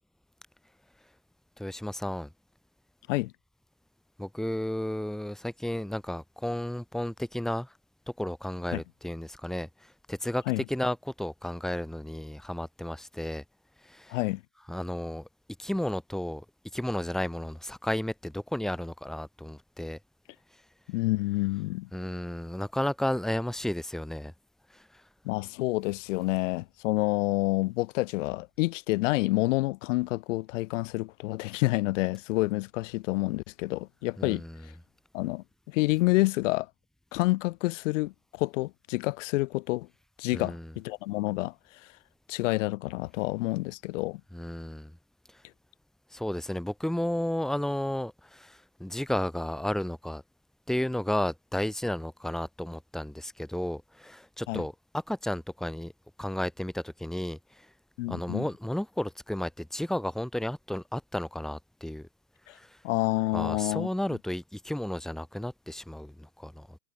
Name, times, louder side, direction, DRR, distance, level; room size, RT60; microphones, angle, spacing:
voice 1, 1.6-2.3 4.2-7.7 8.2-13.4 13.8-14.2 14.7-15.3 15.6-16.4 16.7-20.0 21.9-24.3 24.7-25.0 34.2-34.6 40.3-40.7 44.3-44.9 45.3-45.4 46.1-50.2 50.7-55.9 56.2-57.7 58.1-62.1 62.5-62.8 63.3-66.8, left 1 dB, ahead, 2.6 m, -33 dB
voice 2, 14.1-14.4 20.9-21.9 25.2-34.4 35.1-36.7 37.1-39.9 40.2-41.5 42.3-44.2 54.5-54.6 58.0-58.5 62.5-62.6 62.8-63.9, left 20 dB, 50° left, 2.9 m, -28 dB
hypercardioid pair, 125°, 46 cm